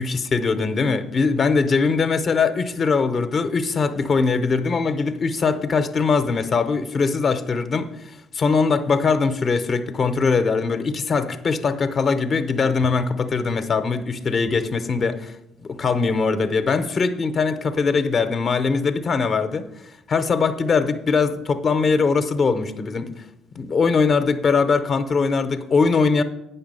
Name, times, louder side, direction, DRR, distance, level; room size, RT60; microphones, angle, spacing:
voice 1, 0.0-7.9 8.3-15.3 15.6-19.7 20.1-23.1 23.6-26.2, left 4 dB, 45° left, 10 dB, 0.7 m, -21 dB
8.6 x 5.7 x 5.4 m, 0.88 s
hypercardioid pair, 55°, 0 cm